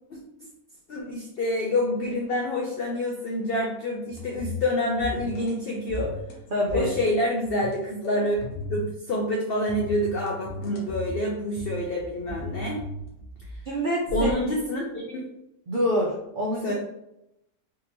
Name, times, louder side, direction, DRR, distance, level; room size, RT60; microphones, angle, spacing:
voice 1, 0.9-6.1 6.7-8.4 8.7-12.8 14.1-15.3 16.6-16.7, left 1 dB, 90° left, -1 dB, 0.5 m, -27 dB
sound 1, 4.1-4.7 5.0-5.5 5.9-6.4 6.7-7.1 7.4-9.0 9.7-11.2 11.6-13.6 14.1-14.3, left 1 dB, 70° left, 1.2 m, -36 dB
voice 2, 6.5-6.9 13.7-14.3 15.7-16.7, equal, 75° right, -3 dB, 0.4 m, -26 dB
3.6 x 2.7 x 2.8 m, 0.84 s
omnidirectional pair, 1.6 m